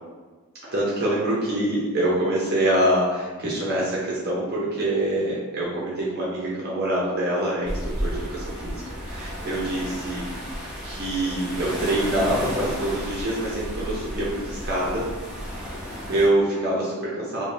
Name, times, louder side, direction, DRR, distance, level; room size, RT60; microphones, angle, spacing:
voice 1, 0.7-10.5 10.8-15.0 16.1-17.4, right 1 dB, 50° right, -6 dB, 0.7 m, -25 dB
sound 1, 7.6-16.3, equal, 5° right, 0.8 m, -33 dB
5.0 x 2.1 x 2.7 m, 1.4 s
head